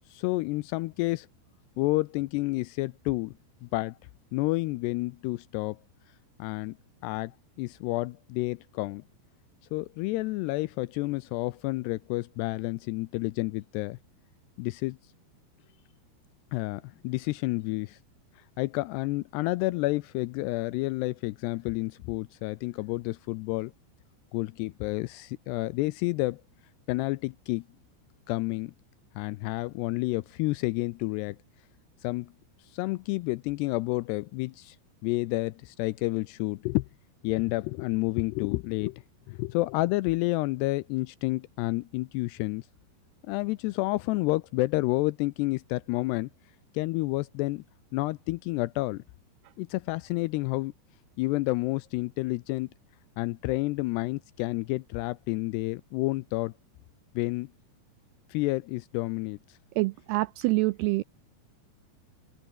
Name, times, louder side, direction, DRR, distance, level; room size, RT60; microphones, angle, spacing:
voice 1, 0.1-1.3 1.8-3.3 3.6-4.0 4.3-5.8 6.4-6.8 7.0-9.0 9.7-14.0 14.6-15.0 16.5-18.0 18.4-23.7 24.3-26.4 26.9-27.7 28.3-28.7 29.2-31.4 32.0-32.3 32.7-34.8 35.0-36.9 37.2-42.7 43.3-46.3 46.7-47.6 47.9-49.0 49.6-50.7 51.2-52.7 53.2-56.5 57.2-57.5 58.3-59.6, left 21 dB, 80° left, 2.5 m, -30 dB
voice 2, 59.8-61.0, right 21 dB, 90° right, 2.3 m, -26 dB
open air
omnidirectional pair, 5.2 m